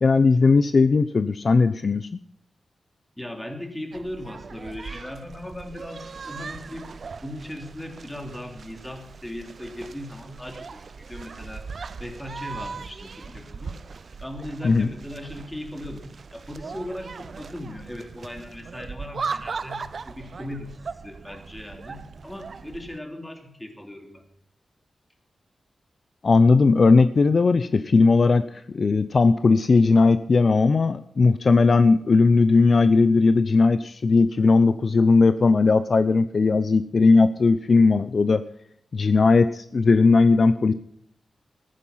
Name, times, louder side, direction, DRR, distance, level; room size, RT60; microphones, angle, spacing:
voice 1, 0.0-2.2 14.6-14.9 26.2-38.4 38.9-40.7, left 4 dB, 55° left, 12 dB, 0.7 m, -18 dB
voice 2, 3.2-6.9 7.2-11.7 12.0-13.8 14.2-24.2, left 1 dB, 10° left, 4 dB, 3.3 m, -38 dB
sound 1, 3.9-23.0, right 5 dB, 60° right, 0.7 m, -39 dB
14.5 x 11.0 x 5.7 m, 0.65 s
wide cardioid pair, 80°, 0 cm